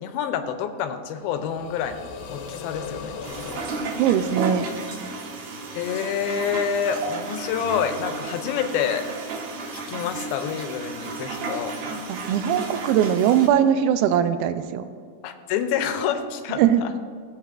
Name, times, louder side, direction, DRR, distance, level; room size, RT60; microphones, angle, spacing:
voice 1, 0.0-3.2 3.5-3.6 5.7-9.1 9.9-11.8 15.2-16.9, left 8 dB, 90° left, 8 dB, 2.5 m, -27 dB
sound 1, 1.2-5.2, left 5 dB, 75° left, 2.4 m, -38 dB
sound 2, 3.2-13.5, right 3 dB, 65° right, 1.8 m, -33 dB
voice 2, 4.0-4.7 12.1-14.9 16.6-16.8, right 9 dB, 85° right, 11 dB, 2.4 m, -20 dB
16.5 x 8.0 x 2.5 m, 2.1 s
omnidirectional pair, 4.3 m